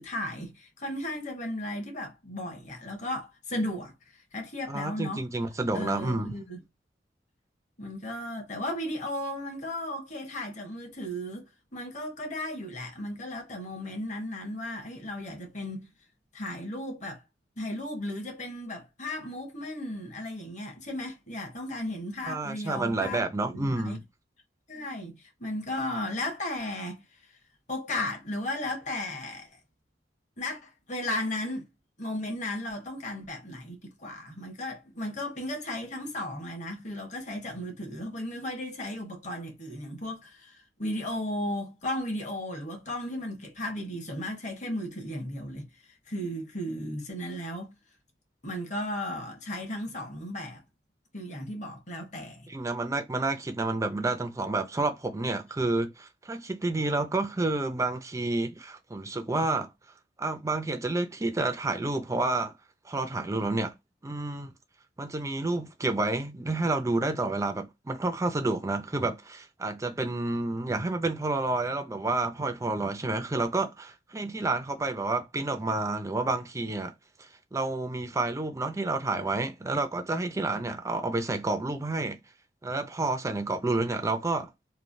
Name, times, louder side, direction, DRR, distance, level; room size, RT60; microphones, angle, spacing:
voice 1, 0.0-5.2 5.7-6.6 7.8-15.9 16.3-17.2 17.6-24.0 24.7-27.0 27.3-27.4 27.7-29.6 30.4-31.7 32.0-45.7 46.1-47.7 48.4-50.6 51.1-52.5, left 1 dB, 40° left, 1.1 m, -35 dB
voice 2, 4.7-6.3 22.3-24.0 52.5-59.7 60.2-62.5 62.8-63.7 64.0-64.5 65.0-76.9 77.2-82.2 82.6-84.5, right 2 dB, 15° right, 0.5 m, -29 dB
3.1 x 2.2 x 2.5 m
head